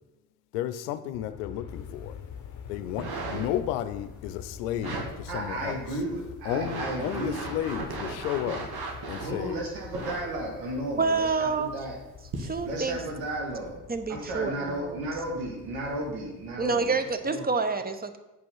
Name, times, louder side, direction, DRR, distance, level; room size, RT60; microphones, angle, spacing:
voice 1, 0.5-2.2 2.7-5.8 6.4-8.7 9.1-9.6, left 11 dB, 85° left, 12 dB, 0.6 m, -32 dB
Aircraft, 1.1-17.3, left 7 dB, 45° left, 0.8 m, -46 dB
sound 1, 2.8-3.7 4.8-5.1 5.7-5.8 6.4-9.4 9.9-10.3 11.2-11.3 12.3-12.6 13.3-13.4, right 3 dB, 55° right, 1.8 m, -36 dB
voice 2, 5.3-7.3 9.2-12.0 12.6-13.8 14.1-17.5, right 1 dB, 85° right, 0 dB, 2.0 m, -34 dB
voice 3, 11.0-11.7 12.4-13.0 13.9-15.0 16.6-18.2, right 4 dB, 20° right, 9 dB, 1.0 m, -28 dB
9.4 x 5.3 x 5.5 m, 1.0 s
hypercardioid pair, 50°, 45 cm